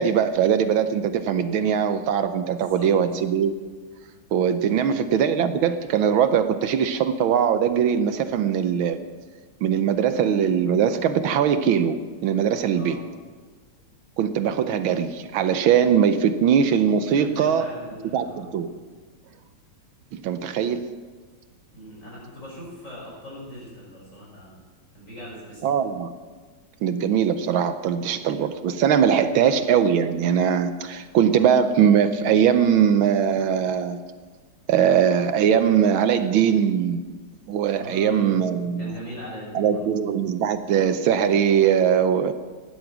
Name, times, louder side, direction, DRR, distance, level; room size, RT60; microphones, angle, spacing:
voice 1, 0.0-3.6 4.3-9.0 9.6-13.0 14.2-17.7 18.1-18.7 20.1-20.9 25.6-26.1 26.8-34.0 34.7-37.0 37.5-38.9 39.5-42.3, right 8 dB, 75° right, 10 dB, 1.5 m, -21 dB
voice 2, 2.5-2.9 4.6-4.9 12.7-13.0 17.1-18.5 21.7-24.6 24.9-25.8 29.2-29.5 37.8-38.3 38.8-39.8, equal, 35° left, -5 dB, 6.6 m, -40 dB
15.5 x 11.5 x 6.0 m, 1.4 s
omnidirectional pair, 2.3 m